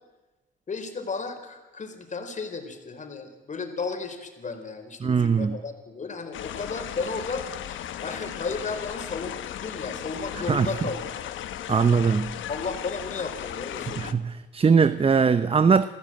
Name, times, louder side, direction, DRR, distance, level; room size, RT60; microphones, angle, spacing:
voice 1, 0.7-11.3 12.0-12.2 12.5-14.1, left 4 dB, 40° left, 4.6 m, -34 dB
voice 2, 5.0-5.6 10.5-10.7 11.7-12.3 14.0-15.9, right 5 dB, 30° right, 0.8 m, -21 dB
sound 1, 6.3-14.1, left 11 dB, 75° left, 1.2 m, -36 dB
28.5 x 15.0 x 8.9 m
cardioid pair, 90°, 20 cm